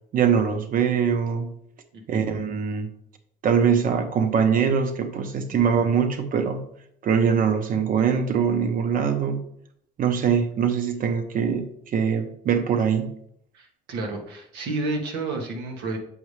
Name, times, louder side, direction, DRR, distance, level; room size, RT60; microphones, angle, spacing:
voice 1, 0.1-1.5 2.1-2.9 3.4-6.6 7.0-9.4 10.0-13.1, right 7 dB, 55° right, 8 dB, 1.0 m, -22 dB
voice 2, 13.5-16.0, right 3 dB, 90° right, 2 dB, 1.5 m, -30 dB
7.4 x 5.4 x 3.3 m, 0.69 s
cardioid pair, 110°, 17 cm